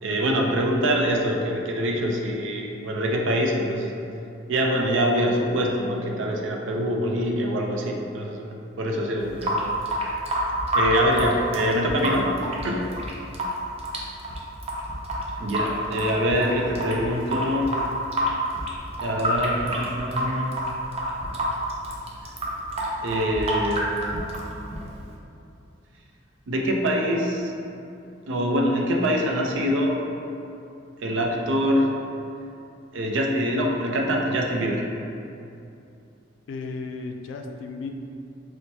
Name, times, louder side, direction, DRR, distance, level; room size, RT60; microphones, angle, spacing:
voice 1, 0.0-3.9 4.5-9.6 9.9-10.2 10.7-12.9 15.4-17.7 19.0-20.5 23.0-24.2 26.5-27.5 28.3-30.0 31.0-31.9 32.9-34.9, equal, 85° right, 0 dB, 0.5 m, -24 dB
Water tap faucet / Sink (filling or washing) / Drip, 9.2-25.1, equal, 35° right, 0.5 m, -28 dB
voice 2, 36.5-37.9, left 4 dB, 80° left, 4 dB, 0.3 m, -34 dB
4.5 x 2.1 x 2.7 m, 2.7 s
head